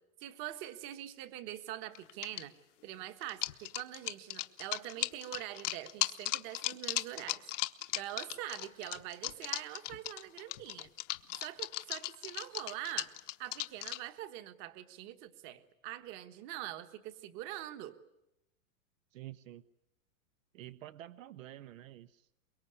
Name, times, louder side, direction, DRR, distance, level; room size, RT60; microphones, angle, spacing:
voice 1, 0.2-2.5 2.8-7.5 7.9-10.9 11.4-13.1 13.4-17.9, right 14 dB, 30° right, 10 dB, 1.4 m, -44 dB
sound 1, 1.9-2.4 3.2-14.0, left 16 dB, 60° left, 1.1 m, -37 dB
voice 2, 19.1-19.6 20.5-22.3, right 13 dB, 65° right, 15 dB, 0.9 m, -49 dB
24.0 x 22.5 x 9.8 m, 0.90 s
supercardioid pair, 170°, 42 cm